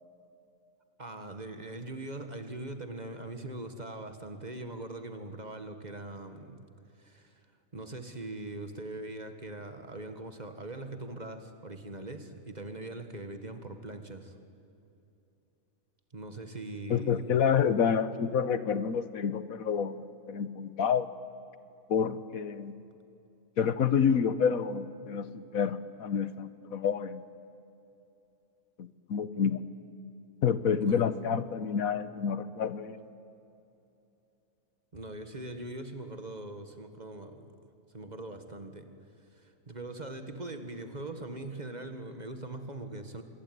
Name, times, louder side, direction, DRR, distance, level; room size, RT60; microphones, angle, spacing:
voice 1, 1.0-6.7 7.0-7.4 7.7-14.3 16.1-17.3 30.8-31.1 34.9-37.6 37.9-38.9 39.4-43.2, right 2 dB, 30° right, 8 dB, 1.8 m, -41 dB
voice 2, 16.9-21.1 21.9-22.7 23.6-27.2 28.8-29.6 30.4-33.0, left 7 dB, 90° left, 14 dB, 1.5 m, -28 dB
26.0 x 21.5 x 9.5 m, 2.8 s
omnidirectional pair, 1.4 m